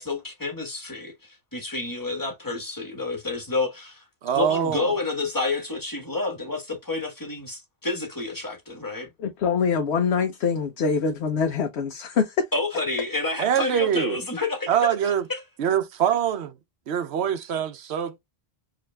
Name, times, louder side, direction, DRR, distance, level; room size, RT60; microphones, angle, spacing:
voice 1, 0.0-4.0 4.3-9.1 12.5-15.4, left 3 dB, 20° left, 1.3 m, -29 dB
voice 2, 4.2-4.9 13.4-14.2 14.7-15.2 15.6-16.5 16.9-18.2, right 9 dB, 80° right, 0.9 m, -24 dB
voice 3, 9.2-12.3, left 5 dB, 90° left, 1.0 m, -24 dB
4.9 x 2.9 x 2.2 m
omnidirectional pair, 1.1 m